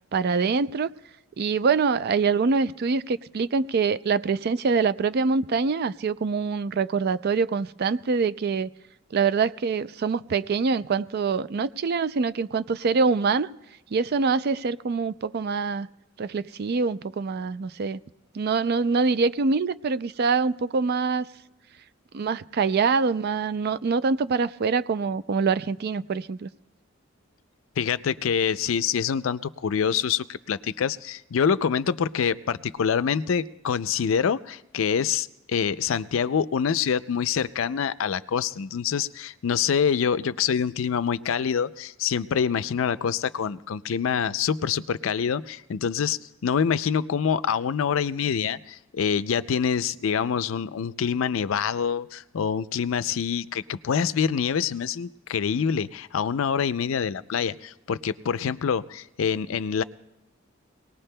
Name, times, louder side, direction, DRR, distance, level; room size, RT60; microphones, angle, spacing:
voice 1, 0.1-0.9 1.4-8.7 9.1-13.5 13.9-15.9 16.2-18.0 18.3-21.3 22.1-26.5, right 4 dB, 50° right, 15 dB, 0.4 m, -24 dB
voice 2, 27.8-59.8, left 7 dB, 70° left, 15 dB, 0.4 m, -26 dB
25.0 x 19.0 x 2.2 m, 0.93 s
head